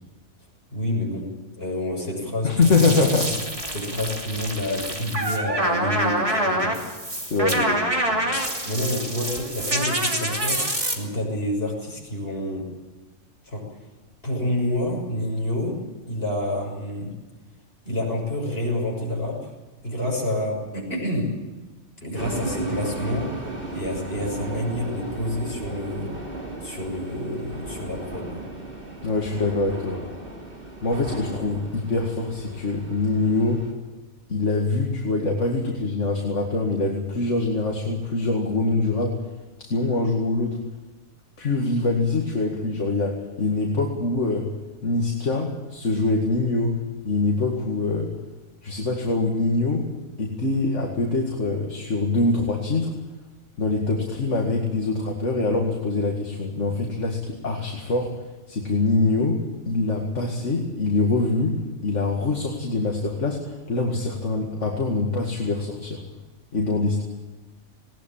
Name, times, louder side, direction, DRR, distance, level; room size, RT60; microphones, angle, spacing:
voice 1, 0.7-1.3 1.6-3.0 3.7-6.8 7.4-8.3 8.6-10.6 11.0-12.7 13.5-13.6 14.2-15.8 16.1-17.1 17.8-19.5 19.8-21.3 22.0-23.3 23.7-26.1 26.6-28.4, left 1 dB, 45° left, -1 dB, 6.8 m, -28 dB
voice 2, 2.4-3.3 7.2-7.6 29.0-30.0 30.8-33.7 34.3-39.2 39.6-40.6 41.4-44.5 44.8-46.8 47.0-48.1 48.6-49.9 50.2-52.9 53.6-58.2 58.5-66.0 66.5-67.0, left 3 dB, 60° left, 1 dB, 2.5 m, -24 dB
sound 1, 2.6-10.9, right 1 dB, 25° right, 2.9 m, -26 dB
sound 2, 22.2-33.7, right 2 dB, 40° right, 3.7 m, -35 dB
20.0 x 18.5 x 8.9 m, 1.2 s
omnidirectional pair, 1.4 m